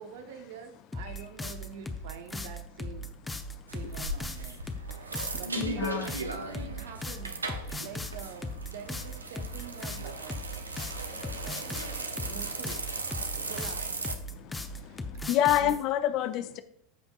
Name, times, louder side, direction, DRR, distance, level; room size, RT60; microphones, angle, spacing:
voice 1, 0.0-3.1 3.7-10.5 11.4-12.9 13.4-14.0 14.7-15.8, right 7 dB, 60° right, 6 dB, 1.0 m, -46 dB
sound 1, 0.9-15.8, left 1 dB, 10° left, 0.8 m, -38 dB
sound 2, 3.7-14.2, right 3 dB, 80° right, 0.7 m, -37 dB
voice 2, 5.6-6.1 11.2-11.3 15.3-16.6, left 12 dB, 45° left, 11 dB, 0.6 m, -27 dB
14.0 x 5.2 x 2.4 m, 0.66 s
figure-of-eight pair, 80°, 0 cm